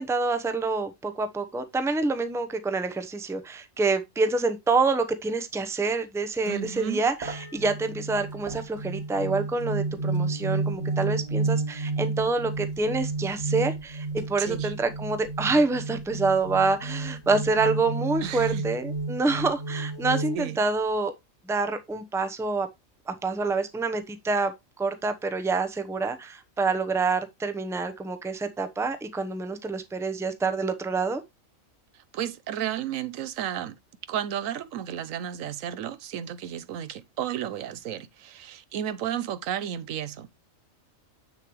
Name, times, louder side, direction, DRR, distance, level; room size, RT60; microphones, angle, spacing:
voice 1, 0.0-21.1 21.5-22.7 23.1-24.5 24.8-31.2, right 3 dB, 5° right, 0.6 m, -27 dB
voice 2, 6.4-7.0 14.4-14.7 18.2-18.6 19.3-19.4 20.3-20.6 31.9-33.8 34.1-40.5, right 10 dB, 90° right, 1.1 m, -33 dB
sound 1, 6.5-6.6 7.2-20.4, right 3 dB, 30° right, 1.6 m, -31 dB
7.7 x 6.6 x 3.1 m
omnidirectional pair, 1.4 m